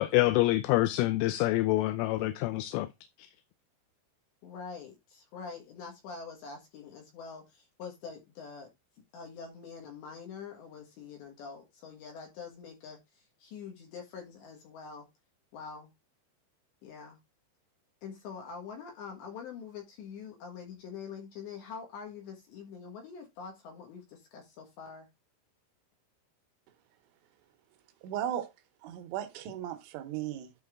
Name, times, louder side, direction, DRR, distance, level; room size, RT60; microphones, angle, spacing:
voice 1, 0.0-2.9, left 17 dB, 85° left, 3.0 m, -26 dB
voice 2, 4.4-8.7 9.1-13.0 13.4-15.1 15.5-15.9 16.8-17.2 18.0-25.1, left 6 dB, 70° left, 3.4 m, -45 dB
voice 3, 28.0-28.5 28.8-30.5, right 11 dB, 75° right, 3.2 m, -36 dB
11.5 x 4.3 x 3.5 m
omnidirectional pair, 5.8 m